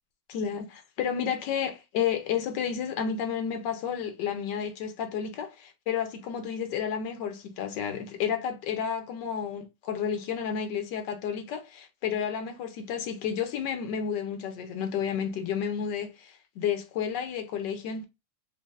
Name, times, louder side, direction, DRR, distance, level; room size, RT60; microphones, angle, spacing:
voice 1, 0.3-18.0, left 7 dB, 85° left, 1.4 m, -31 dB
5.2 x 2.0 x 2.4 m
omnidirectional pair, 1.9 m